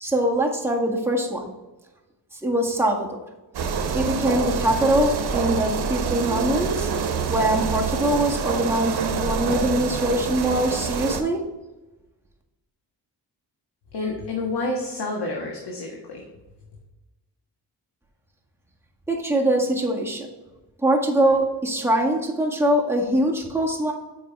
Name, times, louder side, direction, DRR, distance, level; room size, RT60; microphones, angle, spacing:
voice 1, 0.0-1.5 2.4-3.2 3.9-6.9 7.2-11.4 19.1-20.3 20.8-23.9, right 1 dB, 5° right, -2 dB, 1.7 m, -23 dB
sound 1, 3.5-11.2, right 6 dB, 70° right, 1.0 m, -26 dB
voice 2, 13.9-16.2, left 2 dB, 70° left, -1 dB, 1.5 m, -29 dB
7.3 x 5.5 x 3.4 m, 1.1 s
cardioid pair, 75°, 41 cm